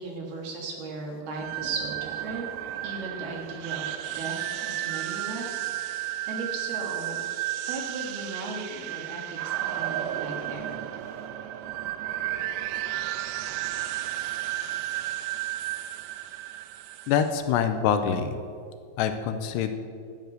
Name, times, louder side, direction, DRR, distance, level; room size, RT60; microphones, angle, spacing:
voice 1, 0.0-2.5 2.8-7.2 7.7-10.8, right 3 dB, 65° right, 0 dB, 3.6 m, -37 dB
sound 1, 1.3-17.3, right 13 dB, 85° right, 2.8 m, -33 dB
voice 2, 17.1-18.4 19.0-19.7, left 8 dB, 85° left, 8 dB, 2.6 m, -25 dB
12.5 x 9.2 x 6.6 m, 2.3 s
omnidirectional pair, 5.0 m